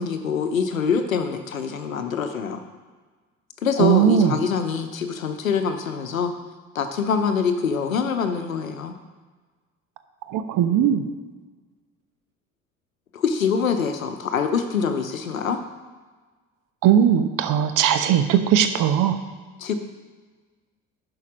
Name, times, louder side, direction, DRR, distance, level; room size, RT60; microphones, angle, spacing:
voice 1, 0.0-2.6 3.6-6.3 6.7-8.9 13.1-15.6 19.6-19.7, left 6 dB, 90° left, 8 dB, 0.8 m, -24 dB
voice 2, 3.8-4.4 10.3-11.1 16.8-19.2, right 9 dB, 55° right, 9 dB, 1.0 m, -19 dB
11.0 x 4.8 x 6.1 m, 1.4 s
figure-of-eight pair, 55°, 39 cm